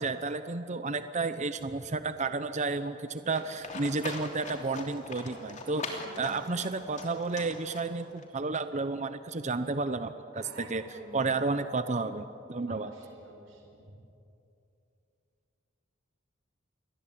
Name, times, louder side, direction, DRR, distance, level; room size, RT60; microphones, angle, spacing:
voice 1, 0.0-10.8 11.1-12.2 12.5-12.9, right 3 dB, 35° right, 11 dB, 0.9 m, -32 dB
Livestock farm animals working animals, 3.3-8.2, left 3 dB, 40° left, 3.1 m, -42 dB
voice 2, 5.7-6.4 10.3-11.2 12.7-14.0, right 1 dB, 85° right, 1 dB, 4.9 m, -50 dB
28.5 x 21.5 x 8.8 m, 2.7 s
head